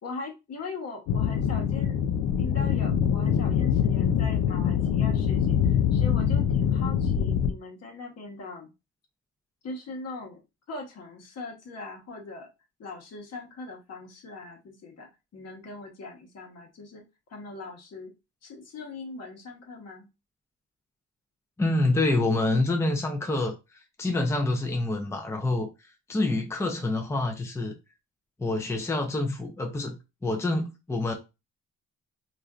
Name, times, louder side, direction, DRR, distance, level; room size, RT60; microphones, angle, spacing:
voice 1, 0.0-2.0 2.4-8.7 9.6-10.4 10.7-12.5 12.8-17.0 17.3-18.1 18.4-20.1, left 3 dB, 55° left, 1.1 m, -40 dB
sound 1, 1.1-7.5, left 8 dB, 85° left, 0.5 m, -24 dB
voice 2, 21.6-23.5 24.0-25.7 26.1-27.7 28.4-30.0 30.2-31.1, left 2 dB, 10° left, 0.5 m, -26 dB
3.2 x 2.5 x 2.4 m
cardioid pair, 90°, 30 cm